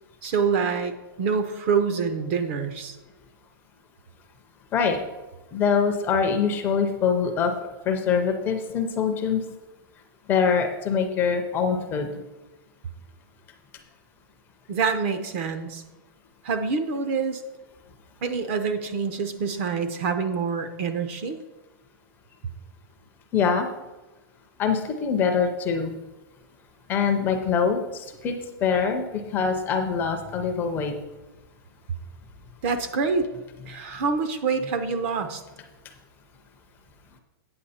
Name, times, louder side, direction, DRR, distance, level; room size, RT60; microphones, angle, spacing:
voice 1, 0.2-3.0 14.7-15.8 16.4-17.4 18.2-21.4 32.6-33.3 33.7-35.4, right 5 dB, 35° right, 10 dB, 0.6 m, -26 dB
voice 2, 5.5-7.5 7.9-9.4 10.3-12.1 23.3-23.7 24.6-25.9 26.9-28.3 28.6-29.0 29.3-30.9, left 6 dB, 15° left, 4 dB, 0.5 m, -24 dB
8.7 x 7.2 x 4.2 m, 1.1 s
supercardioid pair, 170°, 13 cm